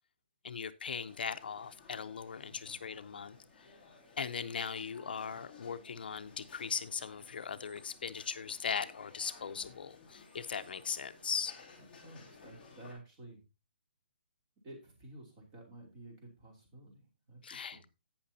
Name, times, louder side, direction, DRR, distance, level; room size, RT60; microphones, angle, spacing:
voice 1, 0.4-3.4 4.2-11.5 17.4-17.8, left 6 dB, 55° left, 11 dB, 0.6 m, -39 dB
sound 1, 1.1-12.9, left 4 dB, 10° left, 2.6 m, -57 dB
voice 2, 2.5-2.9 11.9-13.4 14.6-17.9, right 1 dB, 20° right, 1 dB, 2.8 m, -53 dB
17.0 x 6.0 x 2.7 m, 0.25 s
hypercardioid pair, 175°, 6 cm